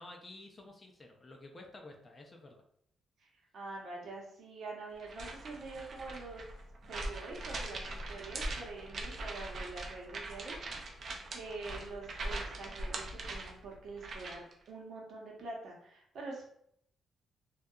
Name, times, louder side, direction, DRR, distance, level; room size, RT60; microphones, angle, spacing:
voice 1, 0.0-2.6, left 2 dB, 25° left, 2 dB, 0.4 m, -51 dB
voice 2, 3.5-6.4 6.9-16.5, right 3 dB, 65° right, -2 dB, 0.7 m, -45 dB
sound 1, 5.0-14.5, right 2 dB, 45° right, 0.4 m, -41 dB
2.6 x 2.2 x 2.3 m, 0.68 s
cardioid pair, 135°, 0 cm